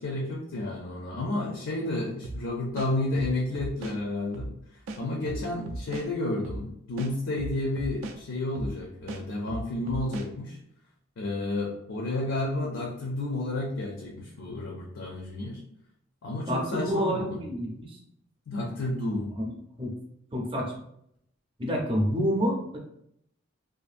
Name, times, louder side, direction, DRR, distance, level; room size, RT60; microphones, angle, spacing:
voice 1, 0.0-10.6 11.2-15.6 16.2-17.4 18.5-19.3, left 2 dB, 65° left, -1 dB, 0.5 m, -31 dB
sound 1, 2.2-2.4 2.8-4.0 4.3-4.5 4.9-6.1 6.4-6.6 7.0-8.2 8.5-8.7 9.1-10.3, right 2 dB, 75° right, 0.4 m, -36 dB
voice 2, 16.5-18.0 19.4-19.5 19.8-19.9 20.3-20.7 21.6-22.8, equal, 25° right, -1 dB, 0.6 m, -28 dB
2.6 x 2.4 x 2.5 m, 0.74 s
head